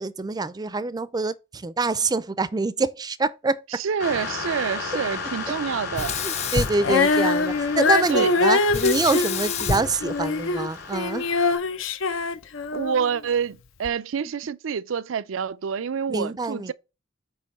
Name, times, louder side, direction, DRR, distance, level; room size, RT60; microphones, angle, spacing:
voice 1, 0.0-3.6 6.2-11.3 16.1-16.7, right 3 dB, 20° right, 0.4 m, -26 dB
voice 2, 3.7-6.2 8.1-8.3 12.7-16.7, right 7 dB, 85° right, 0.4 m, -27 dB
sound 1, 4.0-11.6, left 5 dB, 60° left, 3.5 m, -35 dB
Sink (filling or washing), 5.9-7.6 8.7-11.0, left 5 dB, 35° left, 0.5 m, -29 dB
Female singing, 6.8-13.2 13.8-13.9, left 3 dB, 75° left, 0.6 m, -23 dB
8.3 x 3.0 x 5.3 m
head